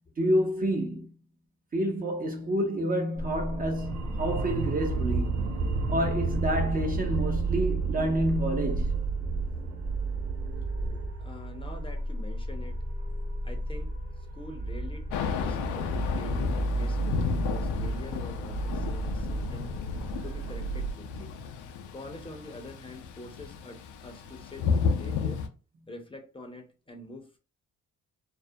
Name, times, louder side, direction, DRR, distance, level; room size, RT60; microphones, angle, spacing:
voice 1, 0.2-1.1 1.7-5.4 5.9-8.9, equal, 30° right, 0.5 m, -28 dB
sound 1, 3.2-11.1, right 3 dB, 70° right, 0.6 m, -33 dB
sound 2, 4.0-20.9, right 3 dB, 50° right, 0.9 m, -33 dB
voice 2, 11.2-12.8 13.4-19.7 20.2-21.3 21.9-25.4 25.9-27.4, left 1 dB, 15° left, 0.5 m, -45 dB
Thunder / Rain, 15.1-25.5, left 6 dB, 85° left, 0.5 m, -33 dB
2.3 x 2.0 x 2.6 m
cardioid pair, 90°, 30 cm